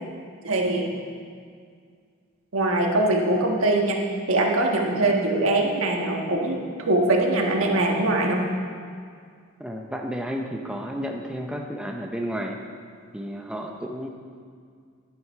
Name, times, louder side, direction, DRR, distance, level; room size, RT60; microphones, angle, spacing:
voice 1, 0.4-0.9 2.5-4.0 4.3-8.4, right 2 dB, 70° right, 0 dB, 1.5 m, -22 dB
voice 2, 9.6-12.6 13.1-14.1, equal, 5° right, 1 dB, 0.6 m, -32 dB
11.0 x 9.2 x 4.6 m, 2.1 s
head